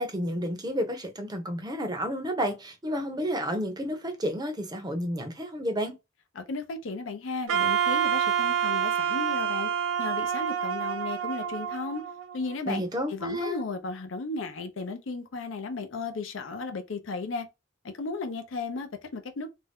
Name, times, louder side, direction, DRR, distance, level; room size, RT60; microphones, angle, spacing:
voice 1, 0.0-5.9 12.7-13.6, equal, 20° right, 0.6 m, -31 dB
voice 2, 6.4-9.7 10.0-12.0 12.3-12.8 13.1-17.5 17.8-19.5, left 3 dB, 75° left, 0.6 m, -35 dB
Wind instrument woodwind instrument, 7.5-12.5, right 8 dB, 80° right, 0.5 m, -27 dB
2.6 x 2.2 x 3.4 m
head